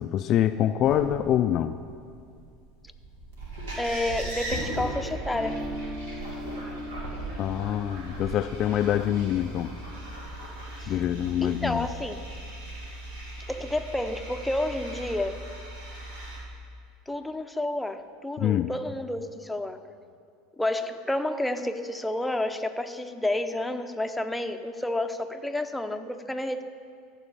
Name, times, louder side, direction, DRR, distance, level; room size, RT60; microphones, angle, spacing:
voice 1, 0.0-1.8 7.4-9.8 10.9-11.9 18.4-18.7, left 11 dB, 45° left, 9 dB, 0.3 m, -25 dB
sound 1, 0.8-16.4, right 1 dB, 80° right, 2.7 m, -38 dB
voice 2, 3.8-5.6 10.8-11.0 11.4-12.3 13.5-15.5 17.1-19.8 20.6-26.6, left 1 dB, 5° left, 7 dB, 0.6 m, -30 dB
Guitar, 5.2-11.3, equal, 40° right, 1.3 m, -41 dB
14.0 x 4.7 x 6.8 m, 2.3 s
hypercardioid pair, 85°, 0 cm